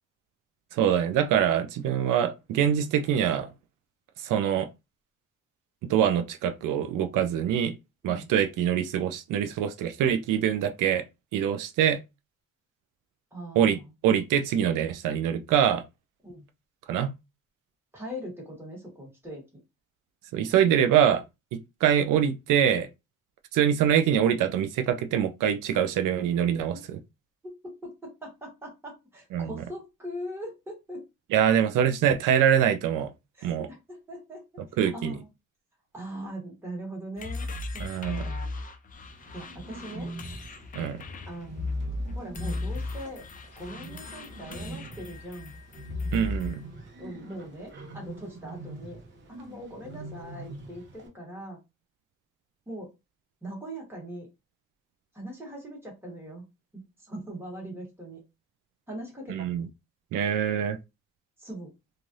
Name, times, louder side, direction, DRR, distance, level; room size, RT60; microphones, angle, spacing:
voice 1, 0.7-3.5 4.2-4.7 5.9-7.7 8.0-11.1 11.3-12.0 13.6-15.8 16.9-17.1 20.3-21.2 21.5-22.9 23.5-27.0 29.3-29.6 31.3-33.1 33.4-33.7 34.8-35.2 37.8-38.2 40.8-41.0 46.1-46.6 59.3-59.7 60.1-60.8, right 9 dB, 90° right, 0.5 m, -24 dB
voice 2, 13.3-13.8 16.2-16.5 17.9-19.4 26.7-26.8 27.4-31.1 33.4-34.4 34.9-35.3 35.9-37.5 37.7-38.5 39.3-40.1 41.3-43.3 43.6-45.6 47.0-49.0 49.4-51.6 52.7-52.9 53.4-54.3 55.1-56.4 56.7-58.2 58.9-59.5 61.4-61.7, right 1 dB, 5° right, 1.2 m, -41 dB
sound 1, 37.2-46.6, left 2 dB, 30° left, 0.3 m, -36 dB
Bird, 38.9-51.1, right 2 dB, 40° right, 0.8 m, -44 dB
3.1 x 2.4 x 2.6 m
cardioid pair, 165°, 31 cm